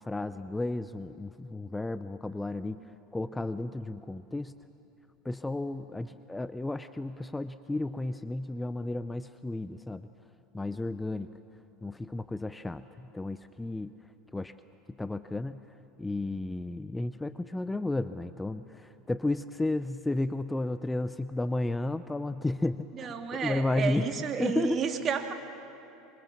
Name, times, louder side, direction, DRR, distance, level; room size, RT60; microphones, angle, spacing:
voice 1, 0.0-2.8 3.1-4.5 5.2-10.0 10.5-11.3 11.8-13.9 14.3-14.5 15.0-15.6 16.0-23.1 23.4-24.1 24.4-24.8, left 2 dB, 10° left, 12 dB, 0.6 m, -33 dB
voice 2, 22.9-25.3, right 6 dB, 35° right, 4 dB, 2.4 m, -31 dB
26.0 x 24.5 x 7.4 m, 2.9 s
supercardioid pair, 100°, 0 cm